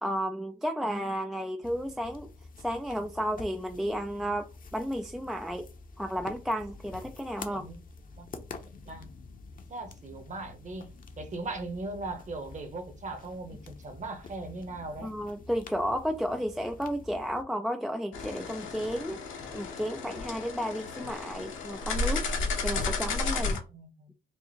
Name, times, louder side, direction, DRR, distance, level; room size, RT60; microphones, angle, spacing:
voice 1, 0.0-2.3 2.6-5.7 6.0-7.7 15.0-19.2 19.5-22.3 22.6-23.6, equal, ahead, 0.3 m, -32 dB
sound 1, 1.6-17.4, left 3 dB, 45° left, 0.8 m, -48 dB
voice 2, 8.7-9.1 9.7-10.9 11.2-15.1 23.7-24.1, right 2 dB, 35° right, 1.0 m, -39 dB
sound 2, 18.1-23.6, left 3 dB, 80° left, 1.1 m, -33 dB
4.5 x 2.5 x 3.1 m
cardioid pair, 90°, 20 cm